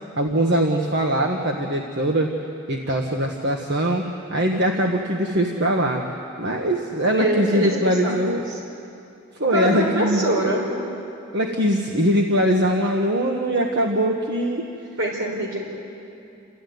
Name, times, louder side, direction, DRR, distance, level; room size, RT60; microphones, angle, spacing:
voice 1, 0.2-2.3 2.7-6.1 6.4-8.4 9.4-10.3 11.3-14.7, right 1 dB, 50° right, 1 dB, 1.4 m, -22 dB
voice 2, 7.2-8.1 9.4-10.7 15.0-15.7, right 1 dB, 70° right, -2 dB, 4.9 m, -23 dB
28.5 x 14.0 x 9.4 m, 2.7 s
head